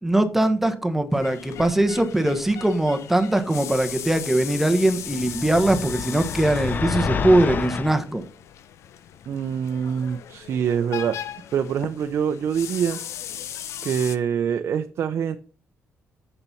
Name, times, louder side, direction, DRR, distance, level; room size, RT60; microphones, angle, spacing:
voice 1, 0.0-8.2, right 1 dB, 5° right, 1.1 m, -21 dB
sound 1, 1.1-14.2, left 10 dB, 80° left, 0.7 m, -38 dB
sound 2, 5.1-8.0, left 6 dB, 40° left, 0.6 m, -28 dB
voice 2, 9.3-13.0 13.8-15.4, right 8 dB, 60° right, 0.6 m, -25 dB
6.9 x 6.7 x 5.8 m
cardioid pair, 130°, 5 cm